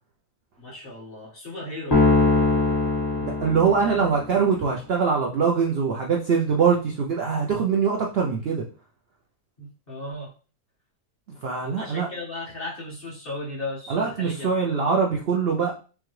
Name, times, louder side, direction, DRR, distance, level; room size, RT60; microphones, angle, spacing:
voice 1, 0.6-2.0 3.8-4.0 9.6-10.3 11.8-14.5, left 2 dB, 35° left, -6 dB, 1.6 m, -36 dB
sound 1, 1.9-4.3, left 3 dB, 15° left, 1.1 m, -21 dB
voice 2, 3.2-8.6 11.4-12.1 13.9-15.7, right 6 dB, 80° right, 0 dB, 0.5 m, -23 dB
5.2 x 2.2 x 3.1 m, 0.37 s
omnidirectional pair, 1.7 m